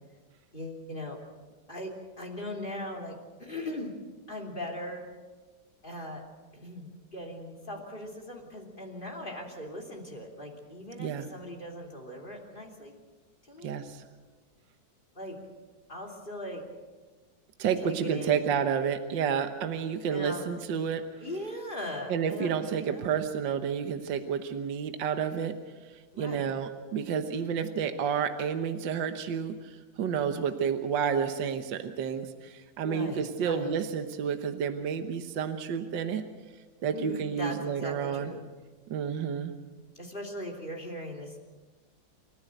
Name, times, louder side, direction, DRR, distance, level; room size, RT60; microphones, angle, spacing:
voice 1, 0.5-1.2 1.7-4.0 4.3-5.1 5.8-6.2 6.5-12.9 13.5-13.7 15.1-15.4 15.9-16.6 17.8-18.4 20.1-20.4 21.2-23.1 26.1-26.4 32.8-33.7 36.9-38.4 39.9-41.4, left 1 dB, 25° left, 3 dB, 3.1 m, -39 dB
voice 2, 13.6-14.0 17.6-21.0 22.1-25.5 26.2-36.2 36.8-38.3 38.9-39.5, right 7 dB, 70° right, 8 dB, 1.8 m, -30 dB
28.5 x 14.5 x 7.9 m, 1.3 s
omnidirectional pair, 2.1 m